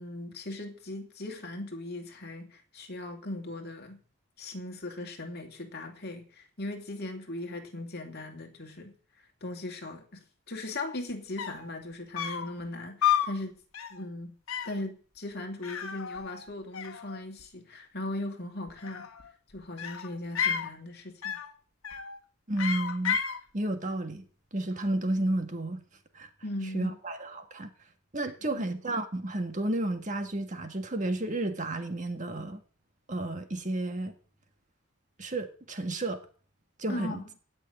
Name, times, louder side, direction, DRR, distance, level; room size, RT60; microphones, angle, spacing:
voice 1, 0.0-4.0 4.4-8.9 9.4-13.6 13.9-14.4 14.6-19.1 19.5-21.4 26.4-27.0 28.5-28.6 36.9-37.3, left 2 dB, 45° left, 2.6 m, -38 dB
sound 1, 11.1-11.2 11.4-11.7 12.2-12.5 13.0-13.4 13.7-14.0 14.5-14.8 15.6-16.5 16.7-17.4 18.7-19.3 19.8-20.7 21.2-21.5 21.8-22.2 22.6-23.4, left 8 dB, 70° left, 1.5 m, -31 dB
voice 2, 22.5-23.2 23.5-24.2 24.5-25.8 26.1-26.3 26.7-27.7 28.1-32.6 33.1-34.1 35.2-36.2 36.8-37.2, right 1 dB, 35° right, 1.7 m, -31 dB
17.0 x 6.3 x 9.5 m
head